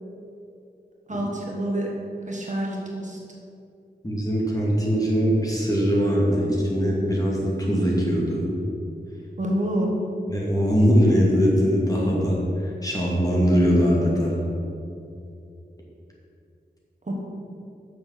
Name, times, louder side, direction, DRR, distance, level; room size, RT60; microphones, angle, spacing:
voice 1, 1.1-1.9 2.3-3.2 9.4-9.9 17.1-17.2, right 1 dB, 45° right, -2 dB, 1.5 m, -27 dB
voice 2, 4.0-8.5 10.3-14.4, equal, 20° left, -5 dB, 2.5 m, -21 dB
7.1 x 6.3 x 7.3 m, 2.6 s
wide cardioid pair, 85°, 18 cm